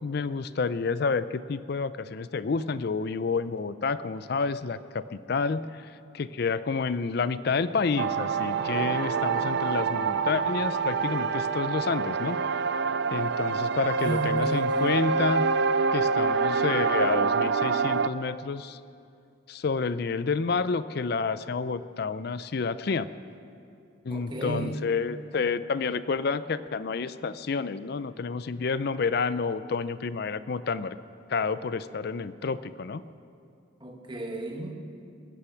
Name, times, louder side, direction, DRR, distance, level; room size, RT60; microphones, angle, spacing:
voice 1, 0.0-12.4 13.1-15.5 15.9-18.8 19.5-23.1 24.0-31.0 31.3-33.0, left 4 dB, 55° left, 14 dB, 0.4 m, -29 dB
sound 1, 8.0-18.1, right 5 dB, 55° right, 0.4 m, -26 dB
voice 2, 14.0-15.0 24.1-24.8 33.8-34.7, right 2 dB, 25° right, 2 dB, 1.4 m, -33 dB
22.0 x 9.8 x 5.8 m, 2.4 s
head